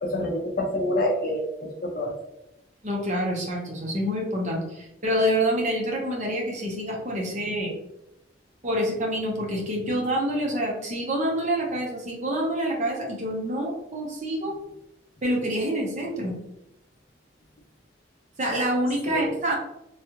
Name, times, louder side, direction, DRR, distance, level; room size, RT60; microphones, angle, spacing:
voice 1, 0.0-2.1 19.1-19.3, left 1 dB, 50° left, 1 dB, 0.6 m, -27 dB
voice 2, 2.8-7.7 8.6-14.5 15.2-16.3 18.4-19.6, equal, 40° right, -2 dB, 0.8 m, -27 dB
3.2 x 2.4 x 2.8 m, 0.86 s
head